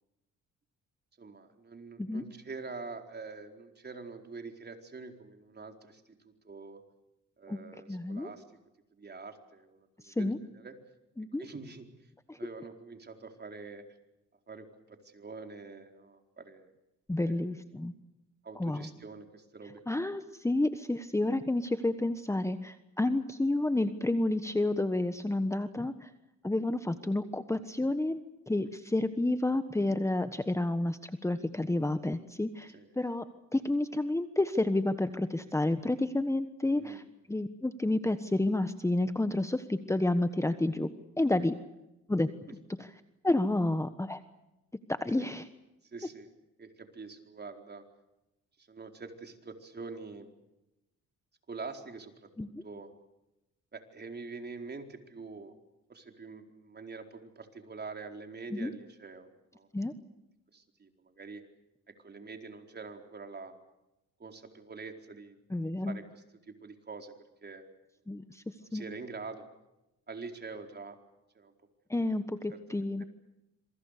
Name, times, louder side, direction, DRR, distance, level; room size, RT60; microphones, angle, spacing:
voice 1, 1.2-6.8 7.4-8.4 8.9-10.8 11.4-11.9 12.4-13.8 14.5-16.7 17.2-17.5 18.4-20.0 32.7-32.9 36.7-37.0 45.2-45.3 45.8-46.3 46.6-47.8 48.6-50.3 51.5-52.3 52.6-52.9 53.7-55.5 55.9-59.7 60.5-61.4 62.0-63.5 64.2-65.4 65.9-67.1 67.4-67.7 68.7-69.5 70.1-71.0 71.3-71.5 71.9-72.1 72.5-73.1, right 4 dB, 35° right, 5 dB, 4.4 m, -45 dB
voice 2, 7.9-8.3 10.0-10.4 11.2-11.4 12.3-12.4 17.1-17.9 18.6-18.9 19.9-26.1 26.4-33.2 33.5-37.0 37.3-40.9 41.2-41.6 42.1-42.3 42.8-42.9 43.2-44.2 44.9-45.5 52.4-52.6 58.5-58.7 59.7-59.9 65.5-66.0 68.1-68.4 68.7-68.8 71.9-73.0, left 2 dB, 10° left, 10 dB, 1.3 m, -30 dB
27.0 x 24.5 x 6.7 m, 0.92 s
cardioid pair, 90°, 30 cm